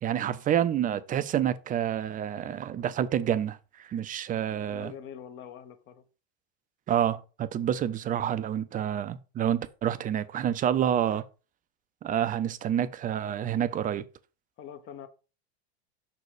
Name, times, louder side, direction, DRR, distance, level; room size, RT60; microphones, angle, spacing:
voice 1, 0.0-4.9 6.9-11.2 12.0-14.0, right 10 dB, 25° right, 0.6 m, -28 dB
voice 2, 4.7-6.0 14.6-15.1, left 8 dB, 40° left, 1.2 m, -44 dB
6.1 x 4.1 x 4.9 m
hypercardioid pair, 105°, 32 cm